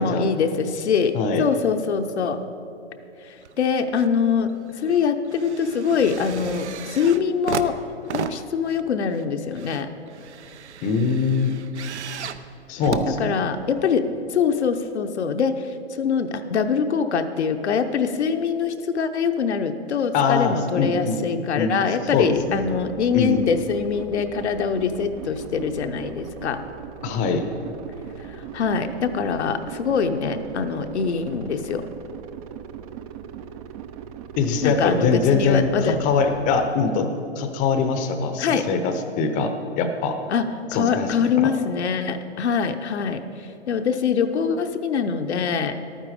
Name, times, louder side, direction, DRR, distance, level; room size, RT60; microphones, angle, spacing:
voice 1, 0.0-2.4 3.6-7.8 8.1-9.9 13.2-15.7 16.0-26.6 28.5-31.9 34.6-36.0 38.4-38.7 40.3-43.2 43.7-45.8, left 6 dB, 70° left, 7 dB, 0.8 m, -23 dB
voice 2, 1.1-1.5 10.8-11.5 12.7-13.4 20.1-21.2 21.6-21.7 22.1-22.7 23.1-23.4 27.0-27.4 34.4-40.2 40.7-41.5, left 5 dB, 20° left, 7 dB, 0.7 m, -23 dB
sound 1, 3.4-4.1 4.5-13.9 14.7-14.8, right 7 dB, 75° right, 0.7 m, -35 dB
sound 2, 22.2-36.7, right 9 dB, 35° right, 0.5 m, -39 dB
12.0 x 9.1 x 4.9 m, 2.7 s
hypercardioid pair, 125°, 34 cm